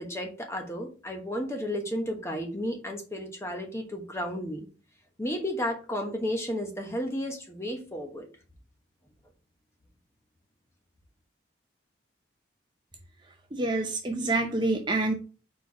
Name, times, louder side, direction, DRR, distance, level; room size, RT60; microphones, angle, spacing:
voice 1, 0.0-4.7 5.2-8.3, equal, 15° left, 2 dB, 1.1 m, -33 dB
voice 2, 13.5-15.1, right 2 dB, 25° right, 3 dB, 0.6 m, -27 dB
4.5 x 4.5 x 4.6 m, 0.35 s
head